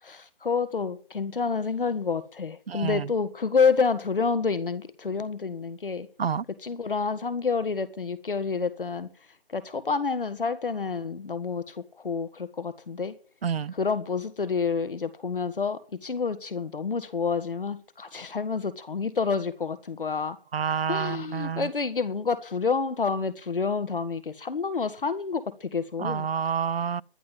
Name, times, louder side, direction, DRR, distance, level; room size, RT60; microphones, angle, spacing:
voice 1, 0.0-6.1 6.6-9.1 9.5-13.2 13.7-20.4 20.9-26.3, left 5 dB, 65° left, 1.5 m, -28 dB
voice 2, 2.7-3.1 6.2-6.4 13.4-13.7 20.5-21.7 26.0-27.0, right 7 dB, 85° right, 0.7 m, -28 dB
12.0 x 11.0 x 7.4 m
hypercardioid pair, 175°, 30 cm